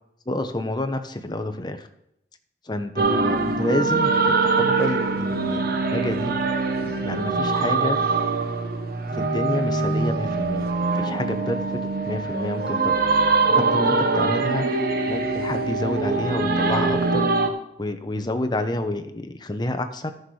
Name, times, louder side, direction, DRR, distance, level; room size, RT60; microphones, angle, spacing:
voice 1, 0.3-1.9 2.7-6.4 6.8-8.0 9.2-10.7 10.9-11.8 12.1-13.1 13.6-14.7 15.0-17.3 17.8-20.1, left 1 dB, 25° left, 7 dB, 0.8 m, -29 dB
sound 1, 3.0-17.5, right 3 dB, 55° right, 1.0 m, -23 dB
13.0 x 6.5 x 4.8 m, 0.77 s
head